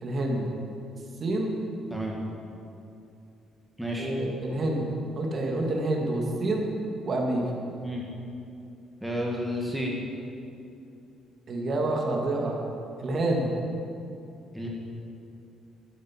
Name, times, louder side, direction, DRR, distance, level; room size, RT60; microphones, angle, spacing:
voice 1, 0.0-0.5 1.2-1.5 4.0-6.7 7.1-7.5 11.5-12.6 13.0-13.5, right 2 dB, 35° right, 0 dB, 2.0 m, -28 dB
voice 2, 3.8-4.1 7.8-8.1 9.0-9.9 14.5-14.7, equal, ahead, -3 dB, 1.7 m, -31 dB
12.0 x 12.0 x 5.8 m, 2.6 s
cardioid pair, 145°, 0 cm